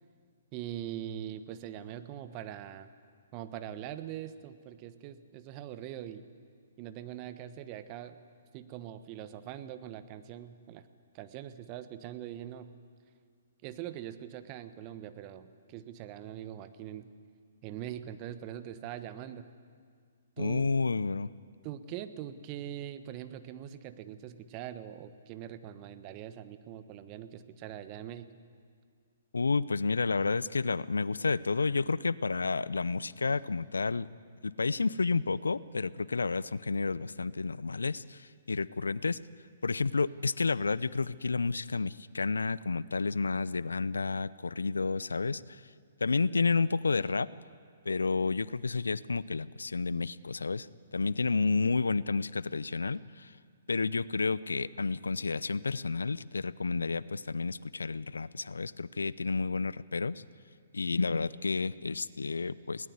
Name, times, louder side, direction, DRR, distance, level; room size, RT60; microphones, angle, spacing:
voice 1, 0.5-2.9 3.3-6.2 6.8-8.2 8.5-10.9 11.1-12.7 13.6-17.1 17.6-19.5 20.4-20.7 21.6-28.3, right 11 dB, 35° right, 12 dB, 1.2 m, -42 dB
voice 2, 20.4-21.3 29.3-34.1 34.4-39.2 39.6-45.6 46.0-47.3 47.9-50.7 50.9-53.3 53.7-60.2 60.7-62.9, left 4 dB, 85° left, 20 dB, 0.6 m, -30 dB
21.0 x 18.0 x 9.7 m, 2.1 s
hypercardioid pair, 130°, 0 cm